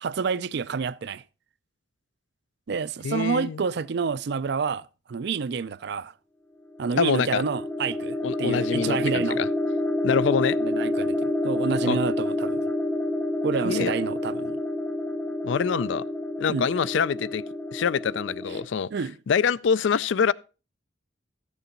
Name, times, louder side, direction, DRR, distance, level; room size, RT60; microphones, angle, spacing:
voice 1, 0.0-1.2 2.7-6.1 6.8-9.4 10.6-12.6 13.4-14.6 16.5-16.7 18.9-19.2, right 5 dB, 60° right, 0.4 m, -29 dB
voice 2, 3.0-3.6 7.0-7.4 8.2-9.5 10.0-10.6 11.8-12.0 13.6-13.9 15.4-16.0 16.4-17.4 17.7-18.9 19.3-20.3, left 6 dB, 70° left, 0.4 m, -25 dB
sound 1, 6.7-18.7, left 1 dB, 10° left, 0.6 m, -28 dB
13.5 x 7.1 x 3.8 m
head